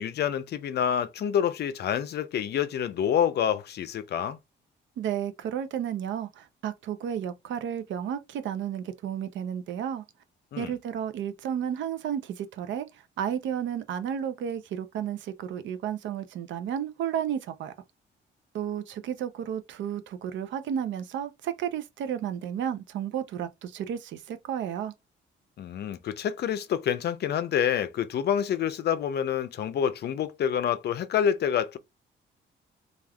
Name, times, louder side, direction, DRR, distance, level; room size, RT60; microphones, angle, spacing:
voice 1, 0.0-4.4 10.5-10.7 25.6-31.8, left 9 dB, 55° left, 0.5 m, -27 dB
voice 2, 5.0-10.0 10.6-12.9 13.2-17.7 18.5-24.9, right 9 dB, 70° right, 0.5 m, -32 dB
3.3 x 2.4 x 2.2 m
cardioid pair, 90°, 20 cm